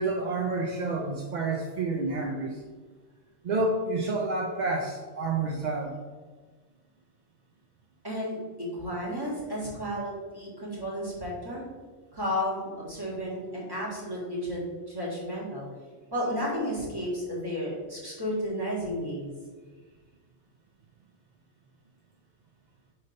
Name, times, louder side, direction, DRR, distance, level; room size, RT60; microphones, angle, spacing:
voice 1, 0.0-2.6 3.4-5.9, right 3 dB, 50° right, 1 dB, 0.5 m, -29 dB
voice 2, 8.0-11.6 12.1-15.7 16.1-19.3, equal, 20° right, -5 dB, 1.9 m, -32 dB
5.4 x 4.0 x 5.2 m, 1.4 s
omnidirectional pair, 1.3 m